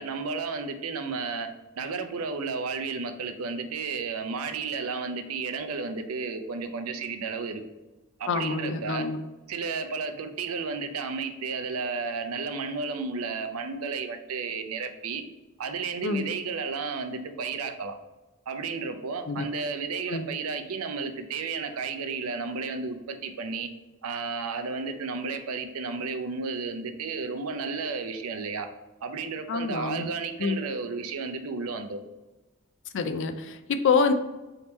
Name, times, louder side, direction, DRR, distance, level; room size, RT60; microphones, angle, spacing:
voice 1, 0.0-1.5 1.8-7.6 8.2-9.1 9.5-15.2 15.6-18.0 18.5-23.7 24.0-28.7 29.0-32.0, right 4 dB, 85° right, 7 dB, 0.5 m, -32 dB
voice 2, 8.3-9.2 16.0-16.3 19.3-19.5 20.1-20.3 29.5-30.1 30.4-30.6 32.9-34.1, left 5 dB, 60° left, 9 dB, 0.4 m, -26 dB
3.6 x 2.9 x 4.0 m, 1.1 s
head